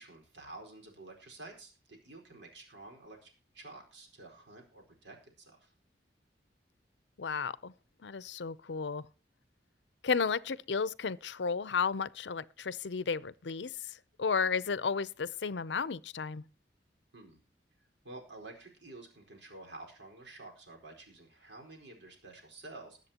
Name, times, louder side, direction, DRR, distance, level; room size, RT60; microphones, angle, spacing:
voice 1, 0.0-5.7 17.1-17.4 18.0-23.0, right 2 dB, 75° right, 4.5 m, -50 dB
voice 2, 7.2-7.7 8.0-9.0 10.0-16.4, left 5 dB, 75° left, 0.6 m, -33 dB
21.5 x 7.5 x 2.9 m
head